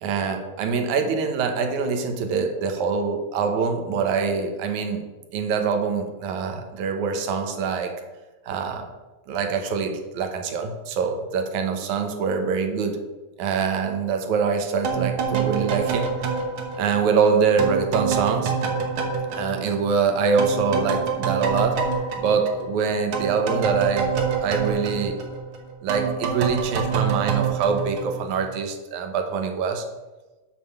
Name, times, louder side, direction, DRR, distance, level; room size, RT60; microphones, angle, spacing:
voice 1, 0.0-5.0 5.3-7.9 8.5-8.9 9.3-13.0 13.4-16.1 16.8-18.5 19.3-21.8 22.2-24.1 24.4-25.2 25.8-29.9, right 5 dB, 75° right, 5 dB, 2.3 m, -24 dB
sound 1, 14.8-20.1 20.4-28.6, right 6 dB, 60° right, 1.6 m, -27 dB
7.5 x 5.0 x 6.9 m, 1.2 s
omnidirectional pair, 3.4 m